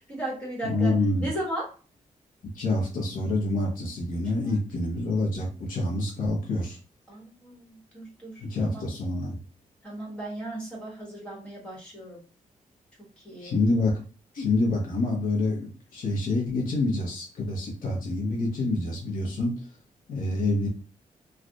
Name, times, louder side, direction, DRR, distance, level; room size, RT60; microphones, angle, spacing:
voice 1, 0.0-0.9 1.2-1.7 4.3-4.6 7.1-8.9 9.8-12.2 13.0-13.5, right 1 dB, 10° left, -3 dB, 1.5 m, -36 dB
voice 2, 0.6-1.3 2.5-6.8 8.4-9.4 13.4-14.0 14.3-19.7 20.1-20.7, left 2 dB, 80° left, -2 dB, 1.0 m, -27 dB
3.3 x 2.4 x 2.5 m, 0.37 s
wide cardioid pair, 125°, 14 cm